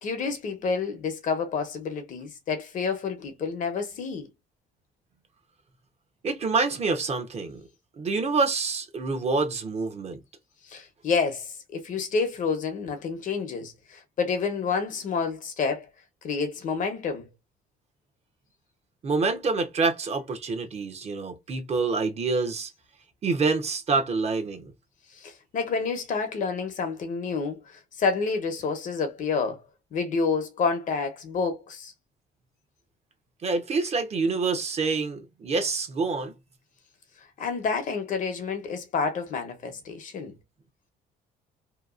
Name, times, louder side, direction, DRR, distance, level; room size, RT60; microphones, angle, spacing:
voice 1, 0.0-4.3 10.6-15.9 16.2-17.3 25.1-29.6 29.9-31.9 37.4-40.4, left 5 dB, 50° left, 0.8 m, -29 dB
voice 2, 6.2-7.7 8.0-10.2 19.0-22.7 23.2-24.7 33.4-36.3, right 4 dB, 40° right, 0.8 m, -27 dB
2.9 x 2.3 x 2.4 m
cardioid pair, 110°, 17 cm